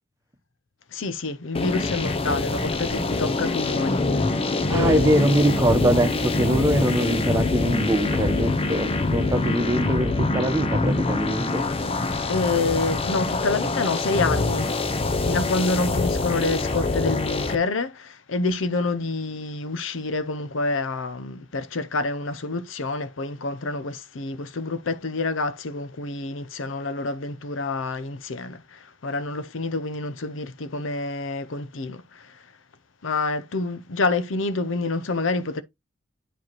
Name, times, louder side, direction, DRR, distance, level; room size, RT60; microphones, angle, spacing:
voice 1, 0.9-4.4 4.7-5.1 12.3-14.7 15.2-32.4 33.0-35.6, left 3 dB, 80° left, 0.7 m, -27 dB
sound 1, 1.5-17.5, left 3 dB, 30° left, 0.6 m, -25 dB
voice 2, 4.7-11.6, right 1 dB, 15° right, 1.1 m, -23 dB
9.0 x 4.9 x 3.0 m
head